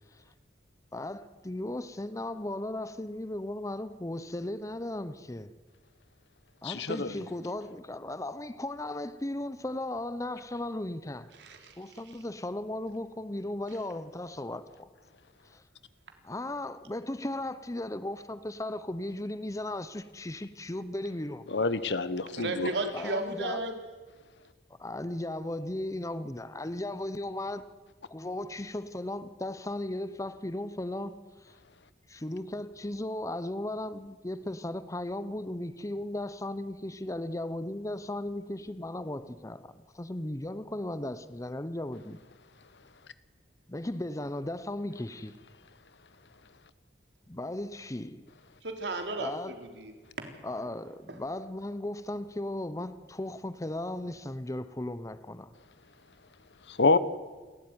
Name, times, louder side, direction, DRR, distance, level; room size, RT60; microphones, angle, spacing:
voice 1, 0.9-5.5 6.6-11.3 11.8-14.9 15.4-15.6 16.2-21.4 22.9-23.6 24.8-27.7 28.1-31.5 32.1-42.2 43.7-45.3 47.3-48.2 49.2-49.6 50.4-55.5, left 1 dB, 20° left, 0.8 m, -36 dB
voice 2, 6.6-7.1 21.5-22.7 56.7-57.0, left 3 dB, 85° left, 1.0 m, -26 dB
voice 3, 11.4-12.2 22.4-23.8 48.6-50.3 51.1-51.2, right 2 dB, 85° right, 3.5 m, -35 dB
28.0 x 13.5 x 9.6 m
head